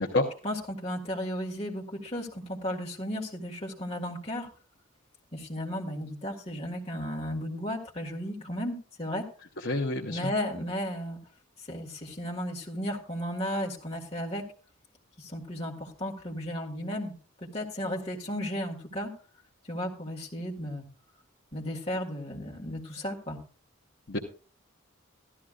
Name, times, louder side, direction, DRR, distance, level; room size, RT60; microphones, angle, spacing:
voice 1, 0.4-4.5 5.3-9.3 10.1-11.2 11.7-14.5 15.2-17.1 17.4-19.1 19.7-20.9 21.5-23.4, equal, 30° left, -2 dB, 1.8 m, -34 dB
voice 2, 9.6-10.3 24.1-24.2, left 2 dB, 50° left, 0 dB, 0.9 m, -28 dB
15.5 x 12.5 x 2.5 m, 0.40 s
head